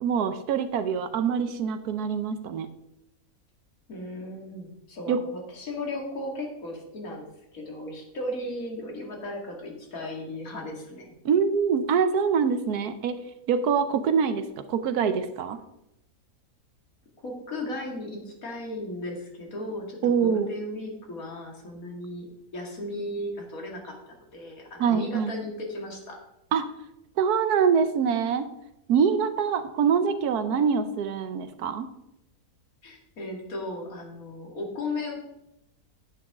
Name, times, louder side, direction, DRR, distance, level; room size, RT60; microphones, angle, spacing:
voice 1, 0.0-2.7 5.1-5.2 11.2-13.2 13.5-15.6 20.0-20.5 24.8-25.3 26.5-26.7 27.2-28.5 28.9-31.9, right 6 dB, 75° right, 10 dB, 1.3 m, -24 dB
voice 2, 3.9-7.3 7.5-11.2 17.2-22.3 22.5-26.2 32.8-35.2, left 1 dB, 60° left, 0 dB, 2.4 m, -36 dB
10.5 x 8.8 x 3.6 m, 0.85 s
omnidirectional pair, 1.7 m